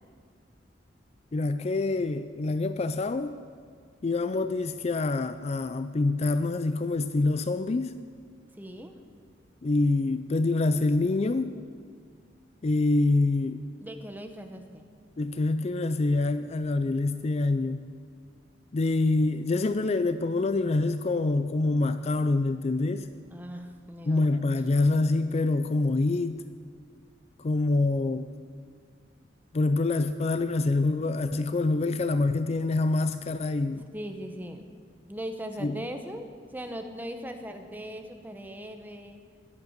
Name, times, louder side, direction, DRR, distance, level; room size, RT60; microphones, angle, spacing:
voice 1, 1.3-3.4 4.0-8.0 9.6-11.6 12.6-13.6 15.2-17.9 18.7-23.1 24.1-26.4 27.4-28.3 29.5-33.9 35.6-35.8, left 2 dB, 35° left, 11 dB, 0.4 m, -26 dB
voice 2, 8.6-8.9 13.8-14.8 23.3-24.2 33.9-34.7 35.1-39.2, equal, 10° right, 5 dB, 1.1 m, -39 dB
20.5 x 8.4 x 6.6 m, 2.1 s
head